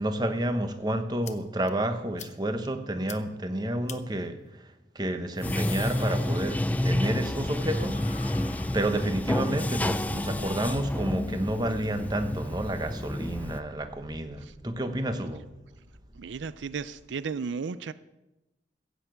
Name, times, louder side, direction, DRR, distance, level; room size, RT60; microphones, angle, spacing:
voice 1, 0.0-8.0 8.7-15.5, right 1 dB, 20° right, 8 dB, 1.0 m, -30 dB
sound 1, 1.2-1.3 1.7-1.8 2.2-2.3 2.7-2.8 3.1-3.2 3.9-4.0 5.1-6.8 7.1-9.2, left 8 dB, 40° left, 0.8 m, -45 dB
Bathtub (filling or washing), 5.4-13.6, left 1 dB, 10° left, 0.4 m, -29 dB
sound 2, 10.3-17.4, equal, 60° right, 2.3 m, -52 dB
voice 2, 16.1-17.9, right 5 dB, 85° right, 16 dB, 0.5 m, -34 dB
15.5 x 6.8 x 8.2 m, 0.99 s
head